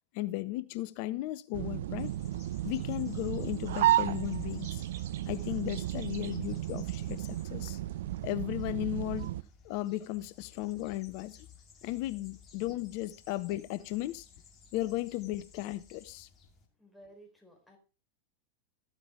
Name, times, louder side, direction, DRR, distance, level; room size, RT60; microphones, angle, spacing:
voice 1, 0.1-2.1 2.6-4.8 5.3-7.8 8.2-9.3 9.6-11.4 11.8-14.3 14.7-16.3, left 16 dB, 45° left, 0.6 m, -35 dB
sound 1, 1.5-9.4, right 13 dB, 55° right, 0.5 m, -33 dB
sound 2, 2.0-16.7, left 6 dB, 30° left, 2.2 m, -58 dB
voice 2, 16.8-17.8, right 1 dB, ahead, 4.2 m, -56 dB
13.5 x 8.1 x 3.6 m
figure-of-eight pair, 90°, 0 cm